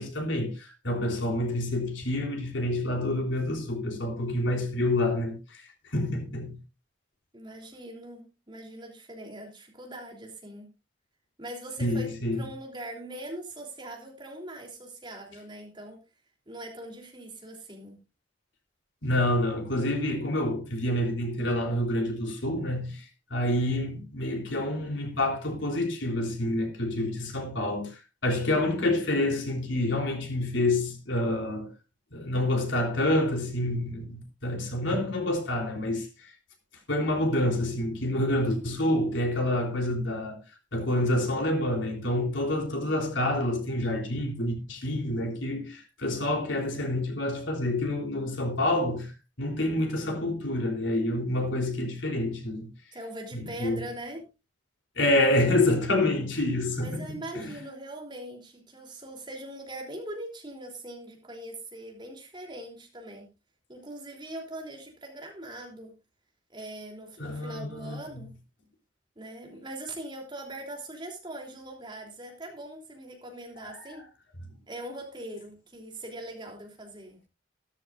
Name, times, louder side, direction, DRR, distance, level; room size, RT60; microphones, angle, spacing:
voice 1, 0.0-6.6 11.8-12.5 19.0-23.1 23.3-31.7 32.1-36.3 36.9-40.4 40.7-49.1 49.4-52.7 53.3-53.8 55.0-57.0 57.3-57.6 67.2-68.3 73.6-74.0, left 1 dB, 75° left, 3.6 m, -28 dB
voice 2, 7.3-10.7 11.4-16.0 16.5-18.0 52.9-54.2 56.8-63.3 63.7-65.9 66.5-68.3 69.1-74.0 74.7-77.2, right 1 dB, 25° right, 3.3 m, -41 dB
15.0 x 13.5 x 2.5 m
head